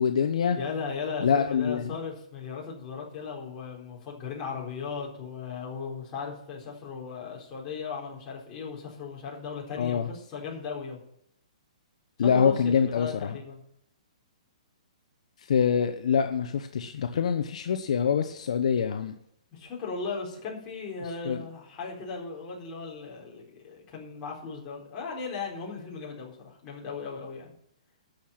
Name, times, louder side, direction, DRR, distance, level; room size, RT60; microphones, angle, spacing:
voice 1, 0.0-0.6 1.2-1.9 9.8-10.1 12.2-13.4 15.5-19.1 21.2-21.4, left 7 dB, 65° left, 7 dB, 0.9 m, -25 dB
voice 2, 0.6-11.0 12.2-13.6 19.5-27.5, left 5 dB, 25° left, -3 dB, 4.1 m, -37 dB
11.5 x 6.7 x 8.8 m, 0.74 s
hypercardioid pair, 155°, 4 cm